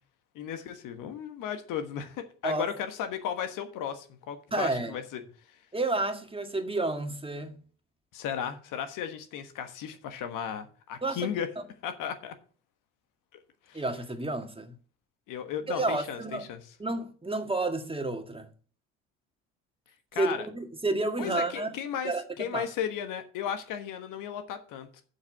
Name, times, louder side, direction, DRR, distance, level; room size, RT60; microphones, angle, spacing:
voice 1, 0.3-5.2 8.1-11.5 11.8-12.3 13.7-13.8 15.3-16.6 20.1-20.5 21.2-25.0, left 8 dB, 65° left, 1.4 m, -35 dB
voice 2, 4.5-4.9 5.7-7.6 11.0-11.3 13.7-14.7 15.7-16.4 16.8-18.5 20.2-21.7 22.0-22.7, right 2 dB, 15° right, 1.7 m, -30 dB
7.2 x 6.4 x 7.3 m
hypercardioid pair, 55°, 34 cm